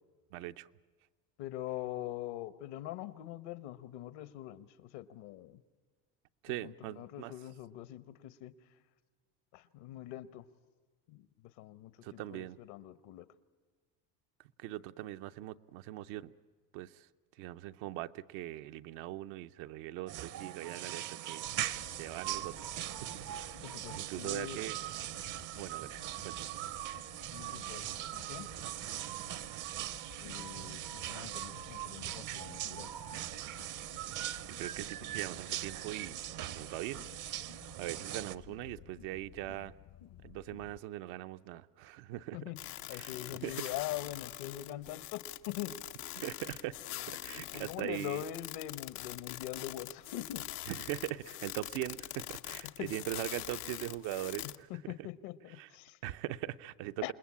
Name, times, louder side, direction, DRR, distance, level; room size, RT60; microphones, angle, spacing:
voice 1, 0.3-0.7 6.4-7.3 12.0-12.6 14.6-16.3 16.7-17.1 17.4-21.5 22.0-22.6 23.0-23.6 24.0-24.8 25.5-25.9 26.2-26.5 34.4-36.2 36.5-37.5 37.8-39.7 40.2-42.4 43.0-43.1 43.4-43.6 46.2-46.8 47.2-48.2 50.7-54.7 55.6-55.7 56.0-57.1, right 15 dB, 80° right, 9 dB, 0.8 m, -41 dB
voice 2, 1.4-5.6 6.5-8.5 9.5-10.5 11.1-13.3 23.6-24.6 27.3-28.5 30.2-32.9 42.3-45.8 46.0-46.2 46.9-50.4 52.6-52.9 54.4-56.0 57.0-57.1, left 13 dB, 75° left, 15 dB, 1.2 m, -43 dB
sound 1, 20.1-38.4, right 13 dB, 50° right, 0.7 m, -41 dB
sound 2, 21.4-40.8, left 12 dB, 55° left, 0.7 m, -55 dB
sound 3, 42.6-54.6, left 15 dB, 90° left, 0.9 m, -44 dB
28.0 x 20.5 x 8.6 m, 1.4 s
supercardioid pair, 110°, 41 cm